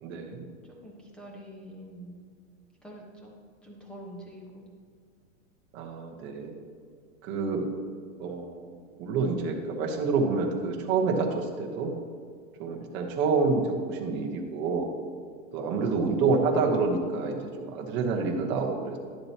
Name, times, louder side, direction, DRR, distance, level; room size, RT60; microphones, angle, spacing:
voice 1, 0.0-0.5 5.7-6.6 7.2-7.7 8.2-8.7 9.0-11.9 12.6-14.9 15.5-19.0, right 4 dB, 30° right, 0 dB, 1.1 m, -28 dB
voice 2, 0.6-2.2 2.8-3.3 3.6-4.6, right 1 dB, ahead, -2 dB, 1.0 m, -45 dB
11.5 x 7.7 x 2.9 m, 2.2 s
supercardioid pair, 160°, 40 cm